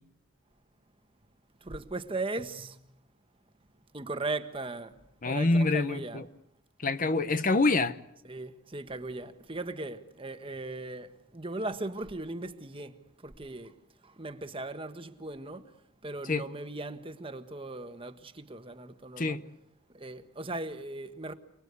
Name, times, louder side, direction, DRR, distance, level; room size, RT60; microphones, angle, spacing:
voice 1, 1.6-2.8 3.9-5.0 5.2-6.2 8.2-13.7 14.0-15.7 16.0-19.4 19.9-21.3, right 2 dB, 25° right, 1.3 m, -38 dB
voice 2, 5.2-6.2 6.8-8.0 16.3-16.4 19.2-19.4, left 3 dB, 40° left, 0.9 m, -26 dB
29.5 x 20.0 x 8.3 m
head